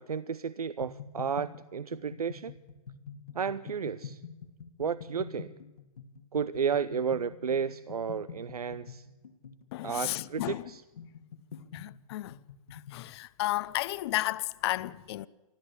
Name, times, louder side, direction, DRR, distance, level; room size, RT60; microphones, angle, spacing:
voice 1, 0.0-2.5 3.3-4.2 4.8-5.5 6.3-9.1 9.8-10.8, right 6 dB, 90° right, 0.7 m, -32 dB
sound 1, 0.8-13.1, left 6 dB, 75° left, 2.0 m, -46 dB
voice 2, 9.7-10.6 11.7-12.3 12.7-15.3, left 16 dB, 45° left, 0.8 m, -33 dB
24.5 x 14.0 x 8.4 m
hypercardioid pair, 130°, 19 cm